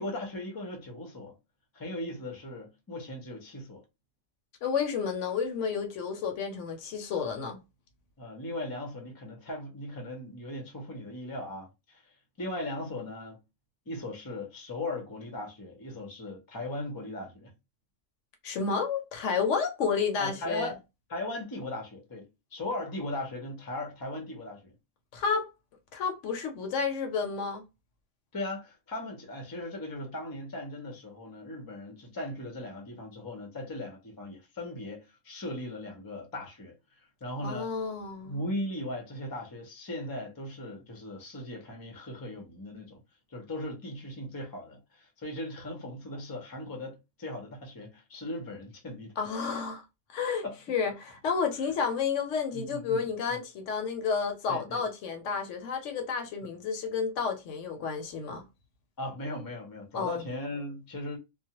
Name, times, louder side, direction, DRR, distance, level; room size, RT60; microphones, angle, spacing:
voice 1, 0.0-1.3 1.7-3.8 8.2-12.1 12.4-13.4 13.9-17.5 20.2-20.8 21.1-24.7 28.3-37.7 38.2-43.0 43.3-49.2 50.4-50.6 51.6-51.7 52.5-53.4 54.5-54.9 59.0-61.2, left 1 dB, 25° left, 0.5 m, -38 dB
voice 2, 4.6-7.6 18.4-20.7 25.1-25.5 25.9-27.6 37.4-38.4 49.2-49.8 50.1-58.4 59.9-60.2, left 5 dB, 75° left, 0.9 m, -31 dB
2.3 x 2.0 x 2.8 m
omnidirectional pair, 1.3 m